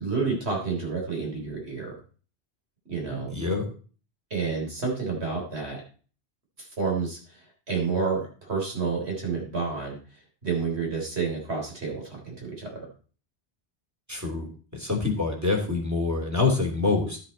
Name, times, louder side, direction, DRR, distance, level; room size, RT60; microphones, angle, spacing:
voice 1, 0.0-1.9 2.9-3.3 4.3-5.8 6.6-10.0 10.4-12.9, right 4 dB, 75° right, 0 dB, 3.8 m, -29 dB
voice 2, 3.3-3.6 14.1-17.2, left 4 dB, 15° right, 1 dB, 2.9 m, -26 dB
12.0 x 7.7 x 4.2 m, 0.39 s
omnidirectional pair, 1.1 m